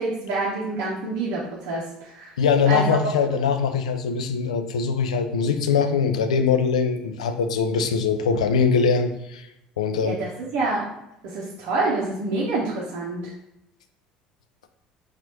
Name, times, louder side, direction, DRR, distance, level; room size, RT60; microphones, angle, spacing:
voice 1, 0.0-2.4 2.7-3.0 10.0-10.9 11.2-13.3, right 2 dB, 65° right, -5 dB, 0.8 m, -27 dB
voice 2, 2.4-9.5 9.8-10.2, left 5 dB, 85° left, 8 dB, 0.3 m, -22 dB
4.2 x 2.4 x 2.9 m, 0.87 s
hypercardioid pair, 65°, 3 cm